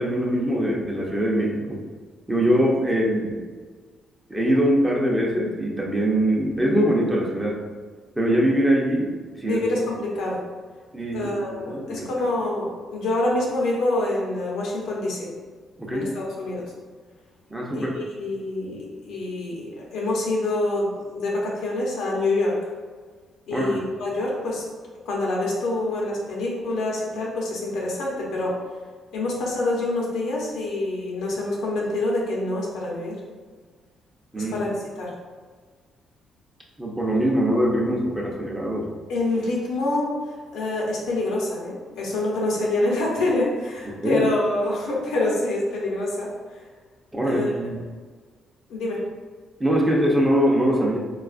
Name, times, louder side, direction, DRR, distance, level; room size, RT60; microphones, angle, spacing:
voice 1, 0.0-1.8 2.3-3.4 4.3-7.6 8.2-9.6 10.9-11.3 11.7-12.1 15.8-16.1 17.5-17.9 23.5-23.8 34.3-34.5 36.8-38.9 43.9-44.2 47.1-47.8 49.6-51.0, equal, 10° right, -3 dB, 0.7 m, -22 dB
voice 2, 9.4-10.4 11.1-15.3 15.9-16.7 17.7-22.6 23.5-24.7 25.1-28.6 29.1-33.2 34.4-34.7 35.0-35.1 39.1-40.1 40.5-46.3 47.2-47.5 48.7-49.0, left 2 dB, 85° left, -3 dB, 0.8 m, -26 dB
4.0 x 2.4 x 2.4 m, 1.5 s
cardioid pair, 90°, 0 cm